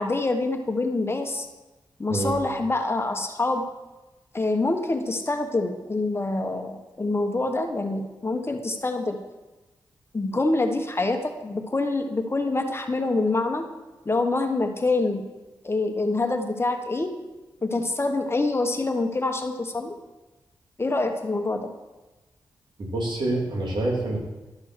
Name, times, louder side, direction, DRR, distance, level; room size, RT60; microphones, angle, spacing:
voice 1, 0.0-1.5 2.0-3.6 4.3-9.2 10.1-13.7 14.0-15.2 15.6-17.1 17.6-20.0 20.8-21.7, left 2 dB, 30° left, 5 dB, 1.2 m, -26 dB
voice 2, 22.8-24.2, right 2 dB, 70° right, -3 dB, 3.1 m, -26 dB
12.5 x 4.4 x 6.3 m, 1.1 s
cardioid pair, 50°, 8 cm